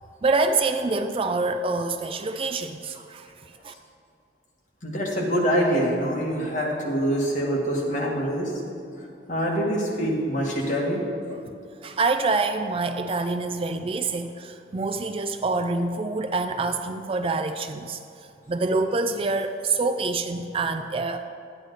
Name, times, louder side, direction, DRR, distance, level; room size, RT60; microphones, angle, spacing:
voice 1, 0.2-3.3 3.6-3.7 11.3-11.4 11.8-18.0 18.5-21.2, right 3 dB, 30° right, 8 dB, 0.4 m, -26 dB
voice 2, 4.8-8.5 9.3-11.0, equal, 40° left, -4 dB, 2.1 m, -25 dB
12.0 x 9.2 x 4.1 m, 2.5 s
head